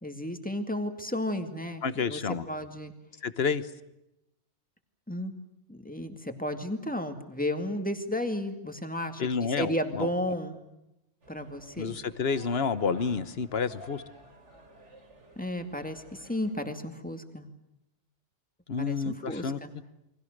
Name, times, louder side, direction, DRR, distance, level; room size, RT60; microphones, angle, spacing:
voice 1, 0.0-2.9 5.1-5.3 5.7-10.6 11.3-12.0 15.4-17.5 18.8-19.7, left 1 dB, 5° left, 6 dB, 2.2 m, -33 dB
voice 2, 1.8-2.4 3.2-3.7 9.2-10.1 11.8-14.0 18.7-19.6, left 5 dB, 60° left, 14 dB, 1.3 m, -29 dB
sound 1, 11.2-16.5, equal, 85° right, 3.9 m, -51 dB
29.5 x 23.5 x 6.7 m, 0.88 s
omnidirectional pair, 1.2 m